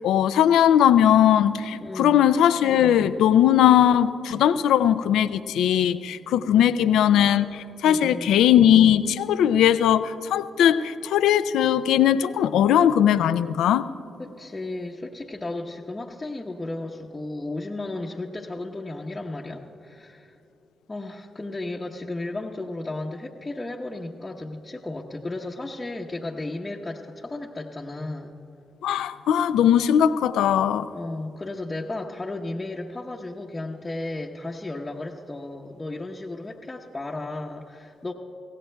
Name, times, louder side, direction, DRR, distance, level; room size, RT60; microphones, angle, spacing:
voice 1, 0.0-13.9 28.8-30.9, left 10 dB, 85° left, 13 dB, 0.3 m, -19 dB
voice 2, 1.8-2.2 6.8-7.0 7.8-8.3 14.2-20.4 20.9-28.4 30.9-38.1, left 2 dB, 25° left, -3 dB, 0.9 m, -34 dB
23.5 x 16.5 x 2.3 m, 2.7 s
supercardioid pair, 55°, 0 cm